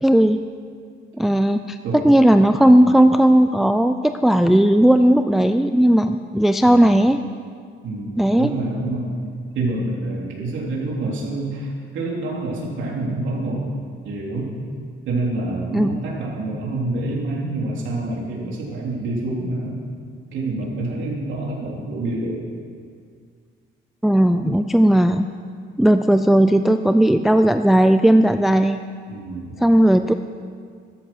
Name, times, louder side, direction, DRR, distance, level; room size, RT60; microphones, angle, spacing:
voice 1, 0.0-0.4 1.2-1.8 2.0-7.2 8.2-8.5 15.7-16.0 24.0-25.3 25.8-28.8 29.6-30.1, right 1 dB, ahead, 9 dB, 0.3 m, -16 dB
voice 2, 1.8-2.1 6.6-6.9 7.8-9.1 9.5-14.5 15.0-19.8 20.3-22.4 29.1-29.6, right 2 dB, 65° right, -3 dB, 3.5 m, -27 dB
14.5 x 13.5 x 6.2 m, 2.1 s
cardioid pair, 150°, 21 cm